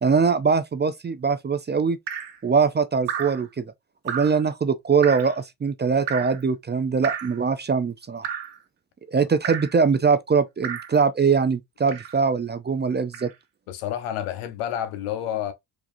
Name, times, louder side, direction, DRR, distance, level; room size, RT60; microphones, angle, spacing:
voice 1, 0.0-2.0 2.4-3.7 4.0-8.3 9.1-13.3, right 5 dB, 25° right, 0.4 m, -22 dB
Drip, 2.1-2.4 3.1-3.4 4.1-4.4 5.0-5.4 6.1-6.4 7.0-7.4 8.2-8.6 9.4-9.8 10.6-11.0 11.9-12.2 13.1-13.3, right 8 dB, 60° right, 1.2 m, -32 dB
voice 2, 13.7-15.5, left 10 dB, 85° left, 1.0 m, -29 dB
4.8 x 2.9 x 2.5 m
cardioid pair, 90°, 49 cm